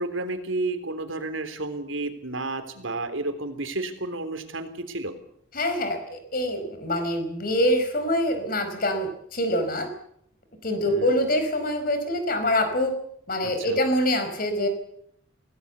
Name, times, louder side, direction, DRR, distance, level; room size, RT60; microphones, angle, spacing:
voice 1, 0.0-5.2 10.8-11.2 13.4-13.8, right 2 dB, 90° right, 9 dB, 3.4 m, -31 dB
voice 2, 5.5-9.9 10.6-12.9 13.3-14.7, left 1 dB, 45° left, 8 dB, 4.9 m, -25 dB
25.5 x 17.5 x 8.2 m, 0.72 s
head